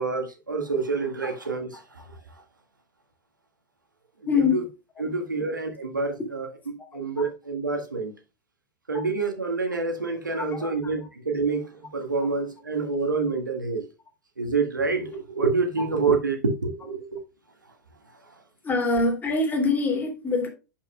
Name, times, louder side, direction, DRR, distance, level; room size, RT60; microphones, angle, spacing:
voice 1, 0.0-2.1 4.3-4.6 5.0-8.1 8.9-13.8 14.4-17.2, right 4 dB, 80° right, 1.7 m, -27 dB
voice 2, 4.3-4.6 5.0-5.4 8.9-9.0 10.4-10.9 18.6-20.5, left 3 dB, 15° left, 2.5 m, -25 dB
11.0 x 5.5 x 2.2 m
figure-of-eight pair, 95°, 10 cm